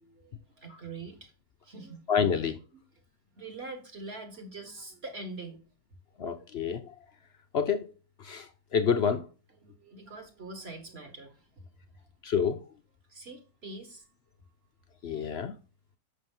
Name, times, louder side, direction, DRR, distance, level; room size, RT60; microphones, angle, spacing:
voice 1, 0.0-1.3 1.6-2.1 2.7-2.8 3.4-5.7 9.6-11.7 11.9-12.1 13.1-14.1, right 3 dB, 35° right, 1.8 m, -44 dB
voice 2, 2.1-2.6 6.2-6.8 7.5-9.3 12.2-12.6 15.0-15.5, left 7 dB, 90° left, 0.5 m, -28 dB
8.2 x 6.2 x 3.7 m
omnidirectional pair, 2.0 m